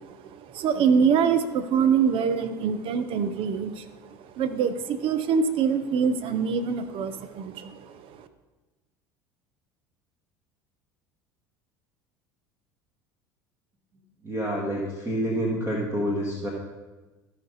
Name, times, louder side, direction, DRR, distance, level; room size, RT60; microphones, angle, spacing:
voice 1, 0.0-3.9 4.2-8.3, right 6 dB, 55° right, 10 dB, 0.8 m, -25 dB
voice 2, 14.2-16.5, equal, 25° right, -2 dB, 1.8 m, -28 dB
13.5 x 5.2 x 4.0 m, 1.2 s
hypercardioid pair, 75°, 11 cm